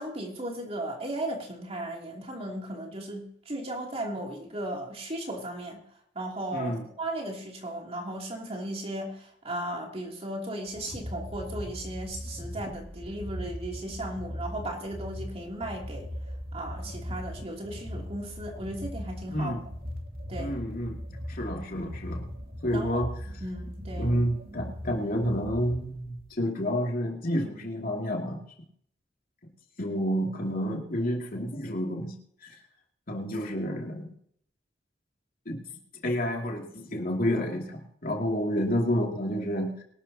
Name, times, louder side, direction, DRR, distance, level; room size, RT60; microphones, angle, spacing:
voice 1, 0.0-5.8 6.1-16.1 16.5-19.6 20.3-20.6 22.7-23.0 23.4-24.2, right 1 dB, 35° right, 0 dB, 2.9 m, -36 dB
voice 2, 6.5-6.8 19.3-19.6 20.4-20.9 21.3-22.3 22.6-23.1 23.9-28.4 29.8-32.2 32.4-32.6 33.1-34.1 35.5-35.6 36.0-39.8, equal, 50° left, 0 dB, 2.6 m, -29 dB
sound 1, 10.7-26.3, equal, 55° right, 2.3 m, -39 dB
23.5 x 12.0 x 2.9 m, 0.67 s
head